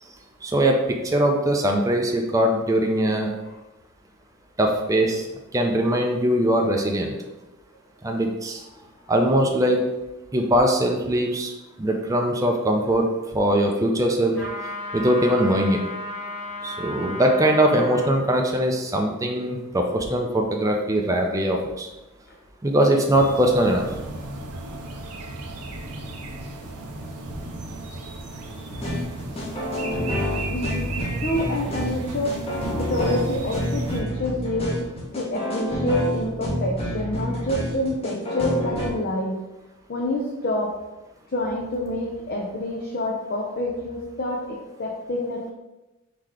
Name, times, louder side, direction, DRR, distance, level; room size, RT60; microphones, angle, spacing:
voice 1, 0.4-3.3 4.6-5.3 5.5-7.1 8.0-8.6 9.1-9.8 10.3-11.5 11.8-13.1 13.3-14.4 14.9-15.8 16.6-21.9 22.6-23.8, right 1 dB, 15° right, 2 dB, 0.4 m, -21 dB
sound 1, 14.3-18.2, left 1 dB, 10° left, 1.4 m, -34 dB
sound 2, 23.1-34.0, right 2 dB, 90° right, 0.7 m, -35 dB
sound 3, 28.7-38.9, left 1 dB, 25° left, 1.0 m, -28 dB
voice 2, 30.5-39.4 39.9-40.7 41.3-45.5, left 1 dB, 45° left, -1 dB, 0.5 m, -27 dB
3.8 x 2.9 x 4.8 m, 1.0 s
head